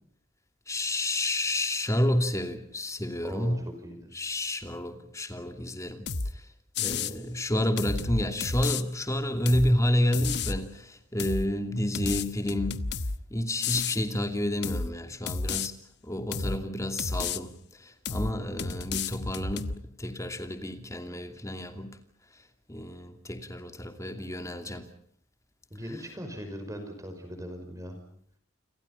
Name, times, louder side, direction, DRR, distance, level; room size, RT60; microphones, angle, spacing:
voice 1, 0.7-3.7 4.1-6.1 6.3-6.4 6.8-12.9 13.3-15.7 16.0-22.0 22.7-24.9, left 1 dB, 15° left, 2.6 m, -30 dB
voice 2, 3.2-4.1 6.9-7.2 25.7-28.0, equal, 15° right, 5.5 m, -40 dB
sound 1, 6.1-6.3 6.7-7.1 7.8-8.8 9.5-9.7 10.1-10.6 11.2-11.5 11.9-13.2 13.6-14.0 14.6-14.9 15.3-15.7 16.3-16.6 17.0-17.4 18.0-18.3 18.6-19.8, left 4 dB, 55° left, 1.1 m, -31 dB
29.5 x 26.5 x 5.6 m
head